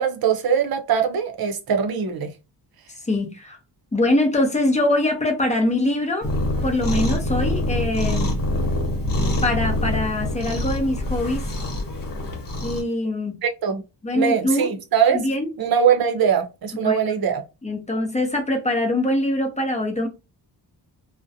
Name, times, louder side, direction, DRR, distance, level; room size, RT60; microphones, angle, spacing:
voice 1, 0.0-2.3 13.4-13.8 14.1-15.2 15.6-17.4, right 7 dB, 55° right, 0.6 m, -21 dB
voice 2, 3.0-3.6 3.9-6.3 6.6-8.3 9.4-11.5 12.6-13.4 14.0-14.7 15.1-15.5 16.8-17.1 17.6-20.1, left 1 dB, 15° left, 0.5 m, -23 dB
Cat, 6.2-12.8, left 1 dB, 50° left, 0.9 m, -25 dB
2.4 x 2.1 x 2.6 m
wide cardioid pair, 170°, 44 cm